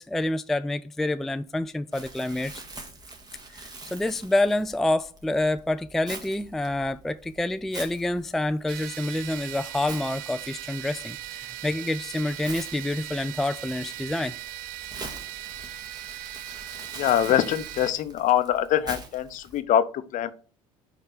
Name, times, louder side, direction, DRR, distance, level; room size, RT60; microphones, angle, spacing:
voice 1, 0.0-2.6 3.5-14.3, left 1 dB, ahead, 0.3 m, -28 dB
Crumpling crinkling, 1.9-19.6, right 2 dB, 25° right, 1.7 m, -45 dB
sound 1, 8.7-17.9, right 14 dB, 55° right, 0.6 m, -39 dB
voice 2, 16.9-20.3, left 11 dB, 45° left, 0.7 m, -24 dB
5.4 x 4.8 x 5.8 m
figure-of-eight pair, 60°, 18 cm